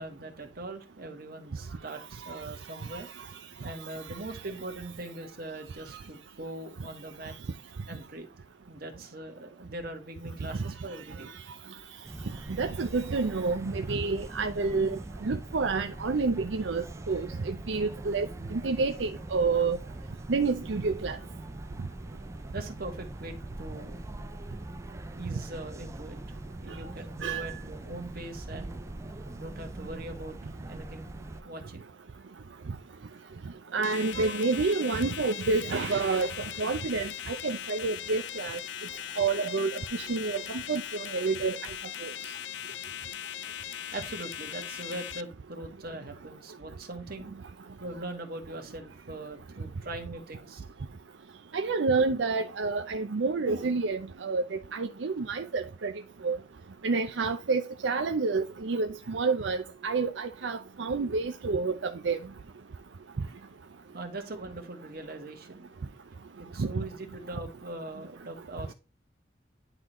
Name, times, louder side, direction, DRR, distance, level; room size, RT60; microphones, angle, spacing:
voice 1, 0.0-3.1 3.6-7.3 7.9-8.3 8.7-11.4 22.5-24.0 25.1-26.4 26.6-28.9 29.3-31.1 31.4-31.8 42.7-42.8 43.9-47.3 47.8-50.7 63.9-65.7 66.4-68.7, right 2 dB, 55° right, 1.8 m, -41 dB
sound 1, 12.0-31.4, right 1 dB, 15° right, 0.4 m, -42 dB
voice 2, 12.6-19.8 20.3-21.2 27.2-27.5 33.7-36.3 36.6-38.6 39.2-40.8 41.1-41.6 42.0-42.1 51.5-55.9 56.2-56.4 56.8-62.2 66.6-66.8, right 4 dB, 85° right, 0.6 m, -29 dB
sound 2, 33.8-45.2, left 11 dB, 75° left, 0.5 m, -39 dB
10.5 x 3.9 x 3.0 m
head